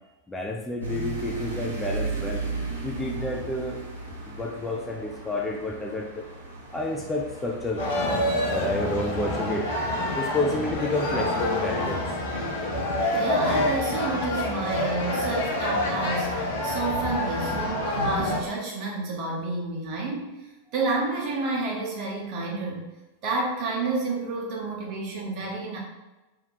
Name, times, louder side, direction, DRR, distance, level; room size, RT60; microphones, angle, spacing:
voice 1, 0.3-2.5 2.8-3.8 4.3-6.2 6.7-9.7 10.2-12.1, left 2 dB, 10° left, 0 dB, 0.3 m, -30 dB
sound 1, 0.8-11.5, right 3 dB, 75° left, 1.1 m, -36 dB
sound 2, 7.8-18.4, left 1 dB, 55° left, 0.8 m, -27 dB
voice 2, 13.1-20.3 20.7-22.8 23.2-25.8, right 3 dB, 40° right, -3 dB, 1.0 m, -30 dB
2.8 x 2.8 x 4.1 m, 1.1 s
figure-of-eight pair, 90°, 0 cm